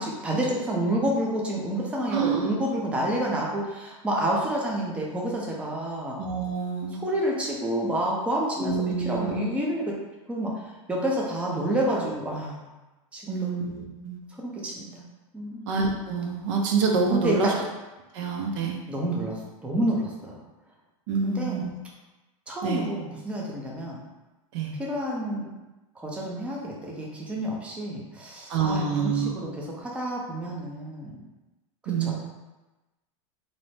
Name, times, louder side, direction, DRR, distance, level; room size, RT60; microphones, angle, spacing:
voice 1, 0.0-6.2 6.9-8.8 9.0-9.8 10.3-12.6 13.1-13.6 14.4-15.0 15.3-15.6 17.1-17.6 18.9-20.4 21.2-21.7 22.5-24.0 24.8-25.5 26.0-31.2 31.8-32.1, right 1 dB, 5° right, -3 dB, 0.4 m, -29 dB
voice 2, 2.1-2.5 6.2-7.0 8.6-9.4 13.3-14.2 15.7-17.5 18.1-18.8 21.1-21.7 22.6-22.9 24.5-24.7 28.5-29.3 31.9-32.1, right 5 dB, 65° right, 1 dB, 0.5 m, -27 dB
2.6 x 2.1 x 3.1 m, 1.1 s
supercardioid pair, 120°, 17 cm